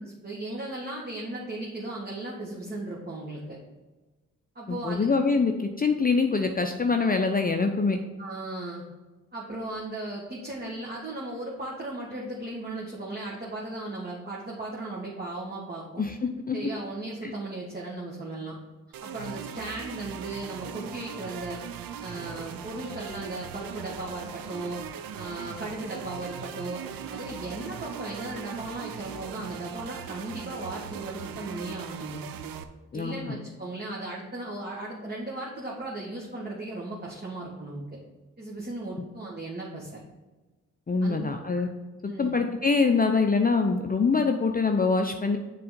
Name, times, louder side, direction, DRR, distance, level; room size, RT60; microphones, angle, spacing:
voice 1, 0.0-3.6 4.5-5.1 8.2-8.8 9.3-16.0 16.5-18.6 19.0-21.6 22.0-24.8 25.2-32.2 32.9-37.8 38.4-40.0 41.0-41.2 41.5-41.6 42.0-42.3, right 2 dB, 25° right, -5 dB, 1.7 m, -36 dB
voice 2, 4.7-8.0 16.0-16.7 17.2-17.3 32.9-33.3 40.9-41.7 42.0-45.4, left 4 dB, 25° left, 4 dB, 0.6 m, -24 dB
sound 1, 18.9-32.6, right 8 dB, 70° right, 0.6 m, -39 dB
6.8 x 3.9 x 5.1 m, 1.2 s
hypercardioid pair, 40°, 36 cm